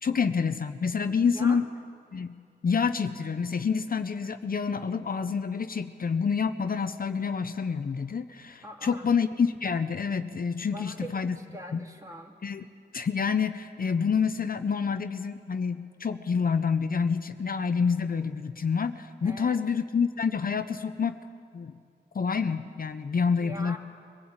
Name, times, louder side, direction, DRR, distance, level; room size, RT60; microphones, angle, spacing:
voice 1, 0.0-1.6 2.1-11.4 11.7-11.8 12.4-12.7 12.9-21.2 21.5-21.7 22.1-23.8, left 6 dB, 55° left, 9 dB, 0.7 m, -28 dB
voice 2, 1.3-1.6 8.6-9.1 10.7-12.4 19.2-19.6 23.3-23.8, equal, 20° right, 1 dB, 2.4 m, -42 dB
23.5 x 17.0 x 8.8 m, 2.3 s
wide cardioid pair, 95°, 18 cm